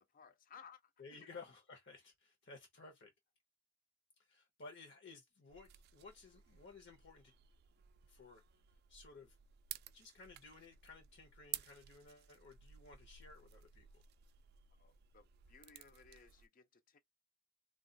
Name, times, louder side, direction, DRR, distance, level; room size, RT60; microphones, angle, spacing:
voice 1, 0.0-1.3 14.7-17.0, left 6 dB, 45° left, 0.4 m, -61 dB
voice 2, 1.0-3.1 4.2-7.3 8.1-8.4 8.9-9.4 9.9-14.0, left 4 dB, 60° left, 0.8 m, -56 dB
sound 1, 5.5-16.5, right 13 dB, 55° right, 0.3 m, -54 dB
2.3 x 2.3 x 3.8 m
head